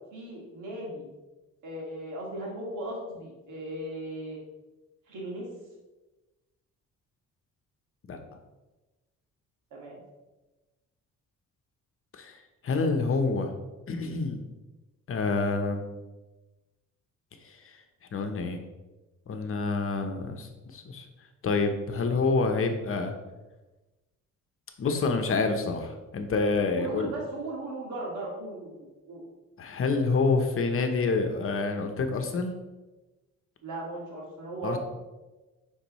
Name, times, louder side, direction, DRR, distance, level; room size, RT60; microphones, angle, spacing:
voice 1, 0.1-1.1 1.6-4.4 5.1-5.5 9.7-10.0 26.7-29.2 33.6-34.8, right 1 dB, 80° right, -3 dB, 2.1 m, -37 dB
voice 2, 12.1-13.5 13.9-14.4 15.1-15.8 17.4-17.8 18.1-18.6 19.3-21.1 21.4-23.1 24.8-27.1 29.6-32.5 34.6-34.8, left 3 dB, 45° left, 5 dB, 0.9 m, -27 dB
9.2 x 3.9 x 3.1 m, 1.1 s
cardioid pair, 90°, 30 cm